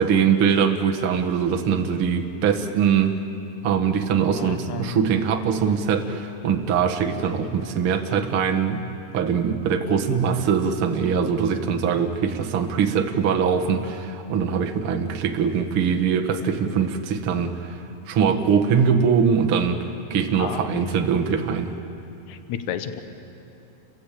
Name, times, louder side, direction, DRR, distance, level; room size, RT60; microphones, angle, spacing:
voice 1, 0.0-3.2 3.6-8.8 9.1-21.7, right 6 dB, 65° right, 5 dB, 1.3 m, -22 dB
voice 2, 4.4-5.1 20.4-20.7 22.3-23.0, left 9 dB, 85° left, 9 dB, 1.7 m, -32 dB
30.0 x 22.5 x 8.5 m, 2.9 s
omnidirectional pair, 5.0 m